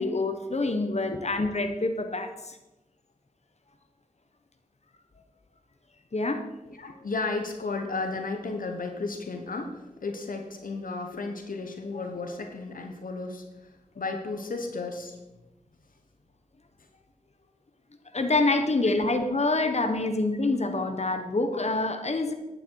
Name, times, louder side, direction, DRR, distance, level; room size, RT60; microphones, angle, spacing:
voice 1, 0.0-2.6 6.1-6.4 18.1-22.3, left 2 dB, 50° left, 6 dB, 1.3 m, -26 dB
voice 2, 6.7-15.2, left 3 dB, 90° left, 4 dB, 1.2 m, -34 dB
11.5 x 9.3 x 4.7 m, 1.0 s
cardioid pair, 45°, 14 cm